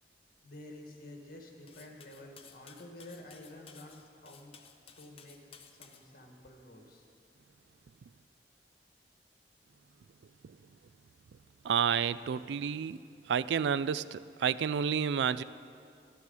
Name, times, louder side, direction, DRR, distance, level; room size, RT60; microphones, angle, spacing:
voice 1, 0.4-4.5 5.0-5.4 5.8-7.0, left 1 dB, 55° left, 2 dB, 1.7 m, -50 dB
Cutlery silverware, 1.7-6.0, left 7 dB, 35° left, 0.7 m, -56 dB
voice 2, 11.6-13.0 13.3-15.4, right 7 dB, 80° right, 17 dB, 0.3 m, -30 dB
12.5 x 12.5 x 5.4 m, 2.4 s
head